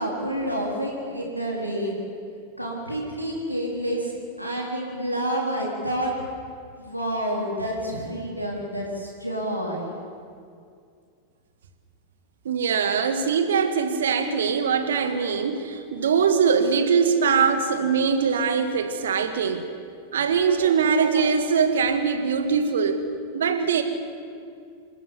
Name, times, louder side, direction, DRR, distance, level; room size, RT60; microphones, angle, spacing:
voice 1, 0.0-2.0 2.6-6.1 6.8-9.9, right 1 dB, 90° right, -3 dB, 3.9 m, -29 dB
voice 2, 12.4-19.7 20.1-23.0 23.3-23.8, right 6 dB, 65° right, 8 dB, 1.8 m, -22 dB
26.5 x 13.5 x 7.4 m, 2.3 s
figure-of-eight pair, 90°, 0 cm